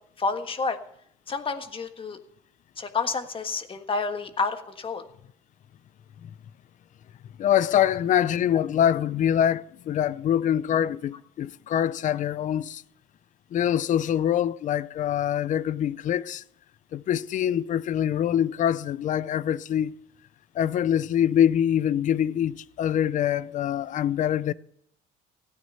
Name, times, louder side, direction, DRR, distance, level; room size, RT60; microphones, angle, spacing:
voice 1, 0.2-0.8 1.3-2.2 2.8-5.1, left 4 dB, 30° left, 1.5 m, -29 dB
voice 2, 7.4-12.8 13.5-16.4 16.9-19.9 20.6-24.5, left 10 dB, 50° left, 0.5 m, -24 dB
16.0 x 9.9 x 5.6 m
cardioid pair, 110°, 17 cm